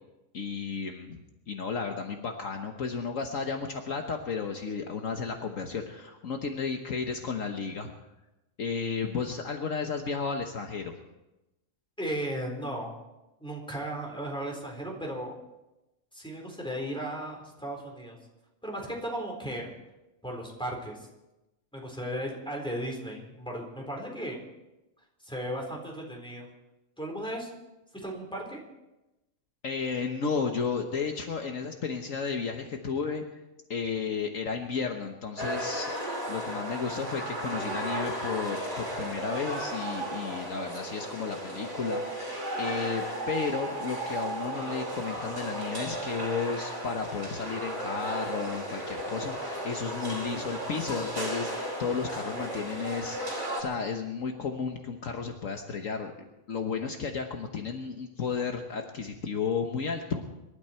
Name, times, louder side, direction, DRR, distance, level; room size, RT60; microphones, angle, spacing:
voice 1, 0.3-1.2 1.5-7.9 8.6-10.9 29.6-33.2 33.7-56.1 56.5-60.3, left 5 dB, 65° left, 4 dB, 1.5 m, -33 dB
voice 2, 12.0-13.0 13.4-15.4 16.1-18.2 18.6-19.7 20.2-21.1 21.7-24.4 25.2-26.5 27.0-27.5 27.9-28.6, right 1 dB, 5° left, 0 dB, 4.1 m, -35 dB
sound 1, 35.4-53.6, right 1 dB, 50° right, 4.9 m, -35 dB
25.5 x 12.5 x 4.5 m, 0.98 s
omnidirectional pair, 1.5 m